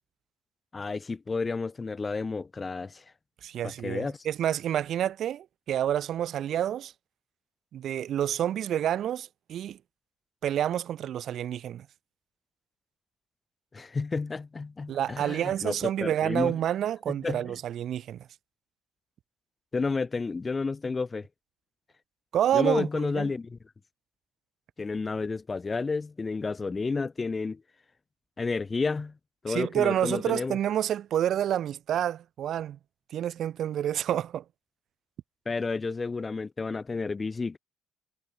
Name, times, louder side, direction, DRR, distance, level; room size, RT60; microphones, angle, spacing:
voice 1, 0.7-3.0 3.6-4.2 13.7-16.6 17.1-17.6 19.7-21.3 22.5-23.6 24.8-27.6 28.4-29.1 29.4-30.6 35.5-37.6, left 4 dB, 25° left, 1.0 m, -31 dB
voice 2, 3.4-6.9 7.7-9.8 10.4-11.9 14.9-18.3 22.3-23.3 29.5-32.8 33.1-34.4, right 10 dB, 60° right, 1.7 m, -28 dB
supercardioid pair, 80°, 0 cm